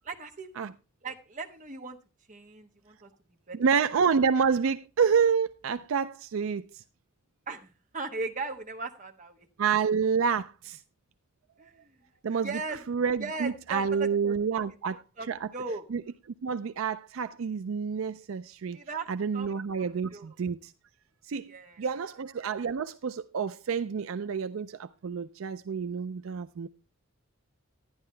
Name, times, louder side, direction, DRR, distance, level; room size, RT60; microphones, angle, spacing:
voice 1, 0.0-0.5 1.0-2.0 2.3-3.1 3.5-3.8 7.5-9.5 11.6-11.9 12.4-12.8 13.2-14.6 15.2-15.9 18.7-19.1 19.3-19.5 20.1-20.3 21.5-21.8, right 4 dB, 35° right, 1.1 m, -38 dB
voice 2, 3.5-6.8 9.6-10.8 12.2-12.6 12.9-15.0 15.3-15.5 15.9-16.0 16.4-18.8 19.1-20.7 21.3-21.5 21.8-26.7, right 6 dB, 75° right, 0.4 m, -28 dB
11.0 x 10.5 x 3.3 m
head